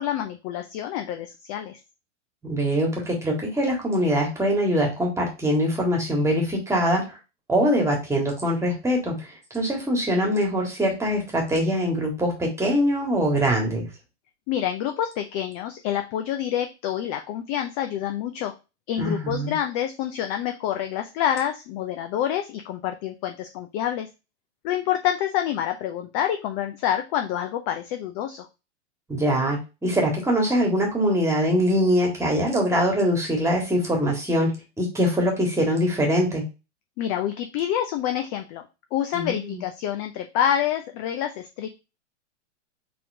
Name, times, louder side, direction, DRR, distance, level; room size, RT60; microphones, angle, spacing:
voice 1, 0.0-1.8 14.5-18.5 18.9-24.1 24.6-28.5 37.0-38.7 38.9-41.7, left 10 dB, 30° left, 6 dB, 0.4 m, -27 dB
voice 2, 2.4-7.2 7.5-9.2 9.5-13.9 19.0-19.5 29.1-36.4 39.1-39.6, equal, 10° right, -1 dB, 1.6 m, -23 dB
4.2 x 3.7 x 2.7 m, 0.27 s
hypercardioid pair, 120°, 36 cm